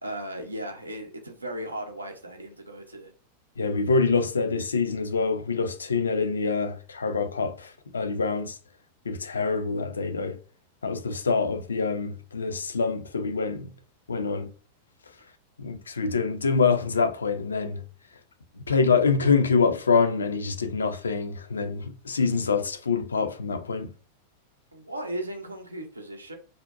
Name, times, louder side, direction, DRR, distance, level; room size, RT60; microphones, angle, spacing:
voice 1, 0.0-3.1 24.7-26.4, right 1 dB, 80° right, 0.6 m, -36 dB
voice 2, 3.6-8.5 9.1-10.4 10.8-13.7 14.1-14.5 15.6-17.8 18.7-23.9, left 4 dB, 70° left, 0.4 m, -25 dB
2.6 x 2.1 x 2.5 m
figure-of-eight pair, 90°, 0 cm